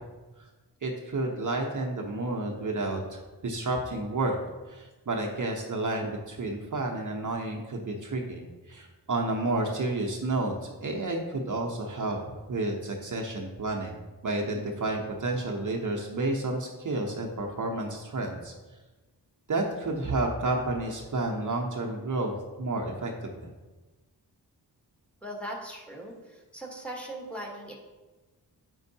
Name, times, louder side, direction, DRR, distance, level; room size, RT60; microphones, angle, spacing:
voice 1, 0.8-4.4 4.7-12.2 12.5-13.9 14.2-18.5 19.5-23.5, right 2 dB, 45° right, 1 dB, 0.8 m, -31 dB
voice 2, 25.2-27.7, right 1 dB, 5° left, -1 dB, 1.2 m, -39 dB
7.5 x 5.3 x 2.7 m, 1.2 s
wide cardioid pair, 75°, 41 cm